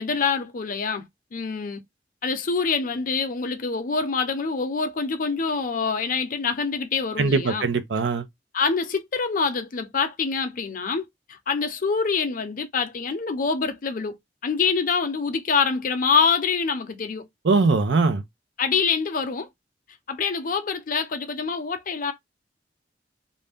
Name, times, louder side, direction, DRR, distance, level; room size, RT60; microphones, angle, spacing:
voice 1, 0.0-1.8 2.2-7.7 8.5-14.2 14.4-17.3 18.6-19.5 20.1-22.1, left 5 dB, 50° left, 0.6 m, -25 dB
voice 2, 7.2-8.3 17.4-18.2, right 4 dB, 85° right, 0.5 m, -21 dB
2.6 x 2.1 x 3.3 m
head